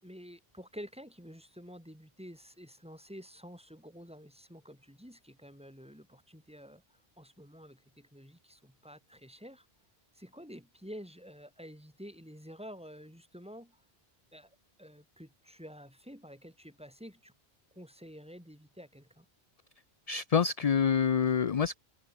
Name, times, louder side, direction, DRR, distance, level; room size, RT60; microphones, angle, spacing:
voice 1, 0.0-6.8 7.2-9.7 10.2-13.7 14.3-14.5 14.8-17.3 17.8-19.2, equal, 5° right, 7.4 m, -49 dB
voice 2, 20.1-21.8, left 7 dB, 40° left, 0.7 m, -27 dB
omnidirectional pair, 1.1 m